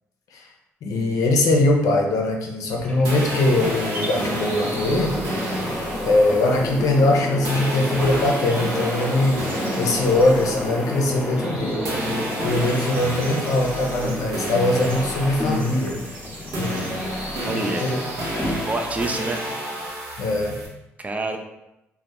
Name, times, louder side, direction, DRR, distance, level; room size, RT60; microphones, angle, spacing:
voice 1, 0.8-5.2 6.0-9.5 9.8-11.8 12.4-16.0 16.6-16.7 17.4-18.0 20.2-20.6, left 2 dB, 65° left, 1 dB, 0.5 m, -21 dB
sound 1, 2.6-19.0, left 1 dB, 15° left, 0.6 m, -31 dB
sound 2, 3.0-11.6 11.8-20.7, right 1 dB, 75° right, 0.6 m, -30 dB
sound 3, 3.2-19.9, equal, 40° right, 0.9 m, -42 dB
voice 2, 17.4-18.3 18.7-19.5 21.0-21.4, right 2 dB, 25° right, 4 dB, 0.4 m, -28 dB
2.1 x 2.1 x 2.8 m, 0.91 s
hypercardioid pair, 45°, 6 cm